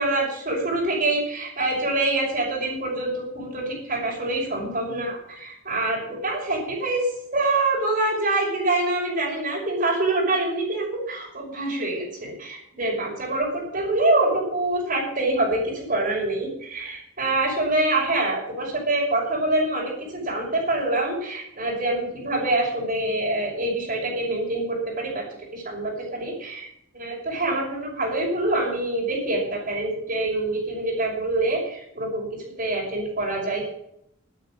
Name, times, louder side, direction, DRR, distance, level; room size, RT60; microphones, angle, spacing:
voice 1, 0.0-7.1 7.3-25.2 25.5-26.7 26.9-33.7, right 2 dB, 45° right, -3 dB, 5.8 m, -25 dB
11.5 x 10.5 x 7.5 m, 0.75 s
head